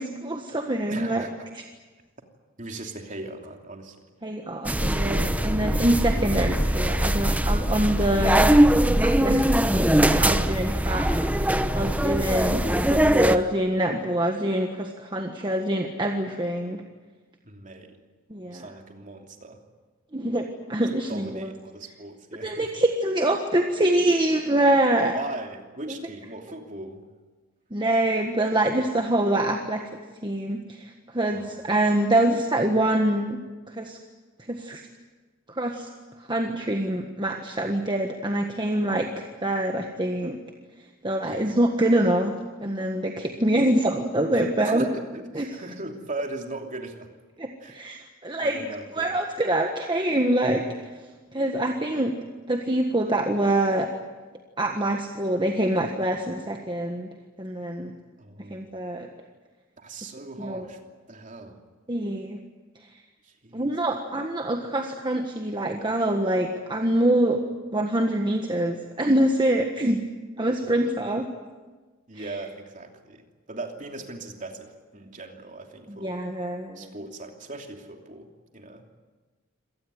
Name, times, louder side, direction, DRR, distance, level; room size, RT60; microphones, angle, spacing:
voice 1, 0.0-1.2 4.2-8.5 9.0-11.0 11.7-16.8 18.3-18.7 20.1-21.5 22.4-25.2 25.9-26.0 27.7-29.8 30.2-33.4 33.7-34.0 34.5-34.8 35.5-35.9 36.3-40.4 41.0-44.9 45.3-45.6 47.4-48.7 48.9-50.7 51.3-52.1 52.5-53.9 54.6-57.1 57.4-57.9 58.5-59.1 60.4-60.7 61.9-62.4 63.5-67.4 67.7-70.0 70.4-71.3 72.2-72.3 76.0-76.9, right 1 dB, 20° right, 3 dB, 1.5 m, -25 dB
voice 2, 0.9-1.3 2.6-4.0 4.2-4.4 17.4-18.0 18.4-19.6 21.1-22.7 25.0-27.0 31.3-31.8 41.2-41.5 44.3-47.1 47.6-47.8 48.4-49.2 58.2-58.7 59.8-60.8 61.1-61.6 63.2-63.7 70.7-70.8 72.1-76.2 76.7-78.8, right 2 dB, 40° right, 3 dB, 3.0 m, -39 dB
sound 1, 4.6-13.4, right 1 dB, 5° right, 0.9 m, -21 dB
26.5 x 18.5 x 9.5 m, 1.3 s
head